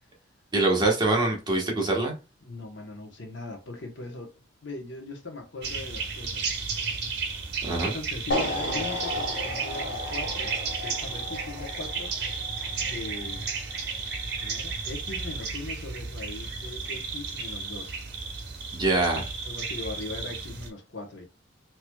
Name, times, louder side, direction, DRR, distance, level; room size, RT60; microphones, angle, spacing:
voice 1, 0.5-2.1 7.6-8.0 18.7-19.3, right 2 dB, 25° right, 1.2 m, -24 dB
voice 2, 2.4-4.3 4.6-6.5 7.7-10.5 10.8-12.1 12.8-13.5 14.4-18.0 19.4-21.2, left 2 dB, 70° left, 1.0 m, -39 dB
sound 1, 5.6-20.7, right 5 dB, 60° right, 0.9 m, -33 dB
sound 2, 8.3-14.5, left 2 dB, 85° left, 1.9 m, -35 dB
4.4 x 2.9 x 2.3 m
head